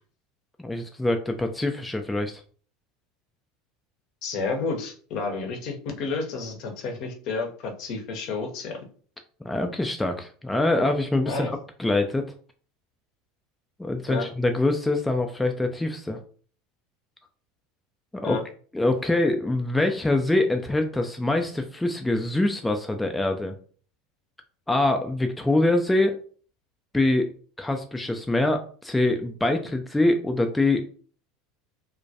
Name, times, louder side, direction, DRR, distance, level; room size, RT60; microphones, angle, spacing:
voice 1, 0.6-2.4 9.4-11.5 11.8-12.2 13.8-16.2 18.2-18.4 18.7-23.5 24.7-26.2 26.9-27.3 27.6-30.8, left 2 dB, 10° left, 4 dB, 0.3 m, -24 dB
voice 2, 4.2-8.8 11.2-11.5 14.1-14.3 18.2-18.4, left 4 dB, 50° left, 2 dB, 0.6 m, -31 dB
2.2 x 2.1 x 2.7 m, 0.43 s
figure-of-eight pair, 75°, 0 cm